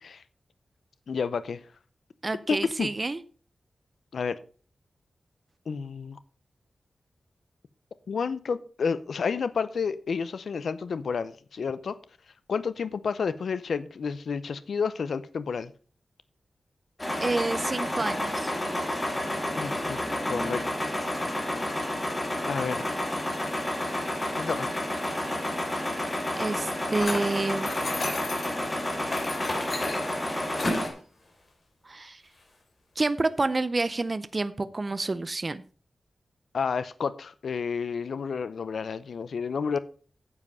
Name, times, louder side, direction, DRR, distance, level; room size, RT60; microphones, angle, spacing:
voice 1, 1.1-1.6 2.5-2.9 4.1-4.4 5.7-6.2 8.1-12.0 12.5-15.7 19.6-20.0 20.3-20.6 22.5-22.9 24.4-24.8 36.5-39.8, left 5 dB, 85° left, 0.6 m, -30 dB
voice 2, 2.2-3.2 17.2-18.5 26.4-27.7 31.8-32.2 33.0-35.6, right 3 dB, 30° right, 0.5 m, -28 dB
sound 1, 17.0-30.9, left 1 dB, 20° left, 3.1 m, -30 dB
sound 2, 27.0-28.6 29.1-30.9, left 2 dB, 45° left, 3.4 m, -32 dB
9.7 x 7.6 x 5.5 m
wide cardioid pair, 130°, 0 cm